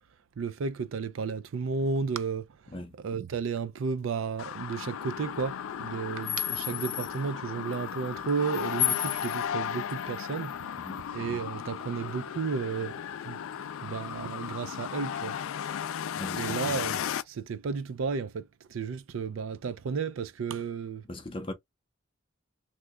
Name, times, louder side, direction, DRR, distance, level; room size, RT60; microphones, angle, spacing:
voice 1, 0.4-10.7 11.1-15.3 16.4-17.0 17.3-21.0, right 5 dB, 70° right, 0.4 m, -33 dB
sound 1, 4.4-17.2, left 10 dB, 75° left, 0.3 m, -34 dB
voice 2, 10.7-11.1 16.2-16.6 21.1-21.5, left 1 dB, 25° left, 0.6 m, -39 dB
3.0 x 2.2 x 3.5 m
head